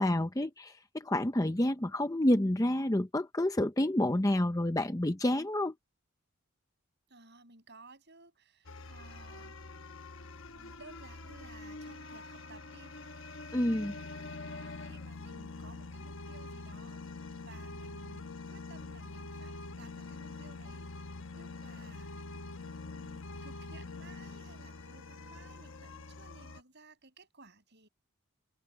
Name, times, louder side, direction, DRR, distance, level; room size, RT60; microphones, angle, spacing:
voice 1, 0.0-5.7 13.5-13.9, left 1 dB, 15° left, 0.7 m, -29 dB
voice 2, 4.1-4.5 7.1-9.6 10.5-12.9 13.5-14.0 14.5-22.1 22.9-27.9, right 3 dB, 50° right, 7.9 m, -57 dB
sound 1, 8.6-26.6, left 3 dB, 60° left, 1.2 m, -45 dB
open air
head